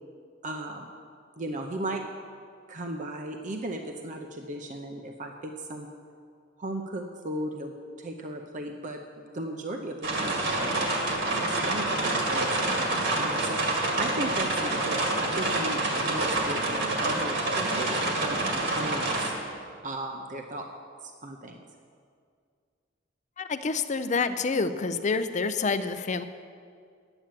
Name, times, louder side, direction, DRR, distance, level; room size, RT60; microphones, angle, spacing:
voice 1, 0.4-0.9 1.4-2.0 2.7-5.9 6.6-10.8 11.3-19.3 19.8-20.7 21.0-21.6, right 1 dB, 40° right, 3 dB, 0.7 m, -36 dB
sound 1, 10.0-19.3, right 2 dB, 65° right, 2.0 m, -27 dB
voice 2, 23.4-26.2, left 4 dB, 40° left, 10 dB, 0.5 m, -28 dB
10.0 x 8.9 x 7.5 m, 2.2 s
head